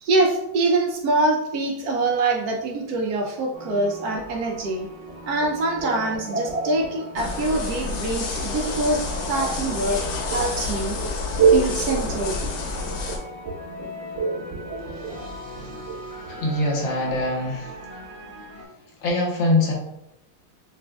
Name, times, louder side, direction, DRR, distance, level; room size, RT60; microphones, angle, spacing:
voice 1, 0.0-4.9 5.2-11.0 11.5-12.4, right 2 dB, 75° right, 2 dB, 0.9 m, -24 dB
sound 1, 3.5-18.6, left 1 dB, 50° right, 0.5 m, -40 dB
sound 2, 5.1-16.7, right 5 dB, 35° right, 1.2 m, -28 dB
sound 3, 7.2-13.2, left 3 dB, 75° left, 1.3 m, -29 dB
voice 2, 16.3-17.8 19.0-19.7, left 2 dB, 90° left, -2 dB, 1.6 m, -23 dB
6.0 x 2.4 x 2.2 m, 0.85 s
omnidirectional pair, 2.0 m